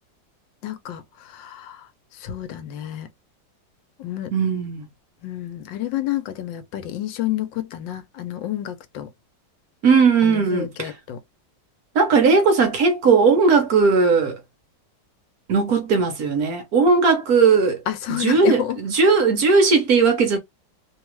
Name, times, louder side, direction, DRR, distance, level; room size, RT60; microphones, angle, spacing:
voice 1, 0.6-1.9 2.1-3.1 4.0-4.3 5.2-9.1 10.2-11.2 17.9-18.8, left 13 dB, 80° left, 1.4 m, -29 dB
voice 2, 4.3-4.8 9.8-10.9 11.9-14.4 15.5-17.8 18.1-20.4, right 4 dB, 60° right, 1.2 m, -17 dB
3.2 x 2.4 x 3.0 m
omnidirectional pair, 2.0 m